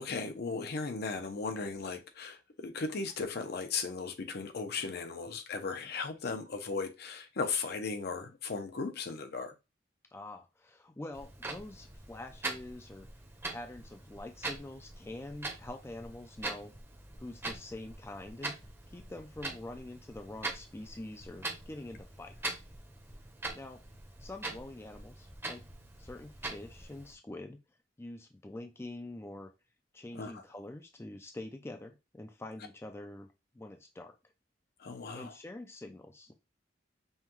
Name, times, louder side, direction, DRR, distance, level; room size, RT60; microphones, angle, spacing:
voice 1, 0.0-9.5 30.1-30.4 34.8-35.3, left 4 dB, 60° left, 0.6 m, -36 dB
voice 2, 10.1-13.1 13.5-16.7 17.2-18.5 18.9-22.6 23.5-23.8 24.2-25.7 26.0-27.6 28.0-29.5 29.9-33.3 33.5-34.2 35.1-36.3, left 2 dB, 15° left, 0.4 m, -45 dB
Clock, 11.1-27.1, right 2 dB, 15° right, 0.7 m, -43 dB
5.5 x 2.2 x 3.0 m
head